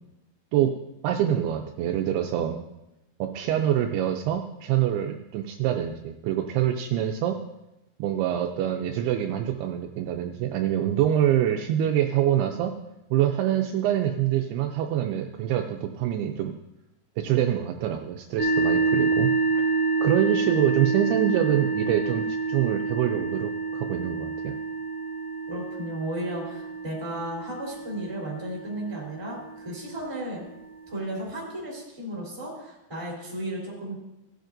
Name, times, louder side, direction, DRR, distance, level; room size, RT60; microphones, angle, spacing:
voice 1, 1.0-2.6 3.2-7.4 8.0-12.7 13.1-16.5 17.2-19.3 19.7-24.6, right 11 dB, 80° right, 4 dB, 2.4 m, -25 dB
sound 1, 18.4-29.9, right 4 dB, 35° right, 0.9 m, -28 dB
voice 2, 25.5-30.4 30.9-33.9, right 1 dB, 5° right, -4 dB, 2.5 m, -34 dB
18.0 x 7.8 x 2.6 m, 0.93 s
omnidirectional pair, 4.8 m